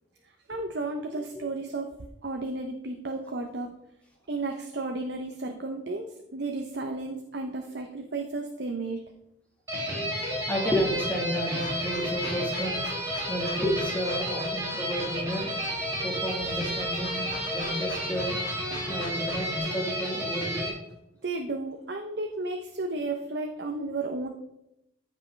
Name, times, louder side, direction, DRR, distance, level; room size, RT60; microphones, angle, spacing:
voice 1, 0.5-1.9 2.2-3.7 4.3-9.0 21.2-24.3, right 2 dB, 65° right, 3 dB, 0.8 m, -33 dB
sound 1, 9.7-20.7, equal, 15° right, 2.5 m, -31 dB
voice 2, 10.5-12.8 13.3-15.6 16.0-18.4 18.9-20.7, equal, 10° left, -2 dB, 1.7 m, -31 dB
sound 2, 11.6-19.6, left 3 dB, 55° left, 2.3 m, -44 dB
14.5 x 5.3 x 3.4 m, 0.86 s
head